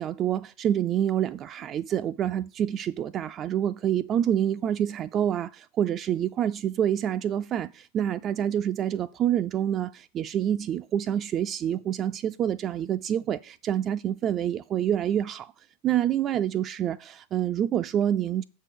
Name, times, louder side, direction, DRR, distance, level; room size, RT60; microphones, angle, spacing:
voice 1, 0.0-15.5 15.8-18.4, right 10 dB, 30° right, 0.3 m, -27 dB
7.3 x 4.6 x 6.7 m
figure-of-eight pair, 90°, 0 cm